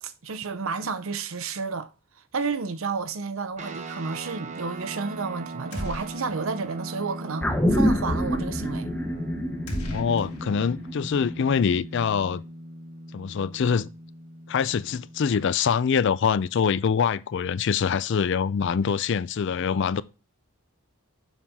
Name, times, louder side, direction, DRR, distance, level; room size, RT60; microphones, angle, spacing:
voice 1, 0.0-1.9 2.3-8.9, right 4 dB, 65° right, 0.7 m, -31 dB
sound 1, 3.6-15.3, right 1 dB, 35° right, 0.8 m, -39 dB
sound 2, 5.7-6.6 6.9-7.0 9.7-11.0, equal, 80° left, 1.9 m, -36 dB
sound 3, 7.4-12.0 12.3-12.4, equal, 10° left, 0.7 m, -27 dB
voice 2, 9.8-12.4 13.1-13.9 14.5-20.0, left 6 dB, 55° left, 0.4 m, -24 dB
7.2 x 5.5 x 3.5 m
head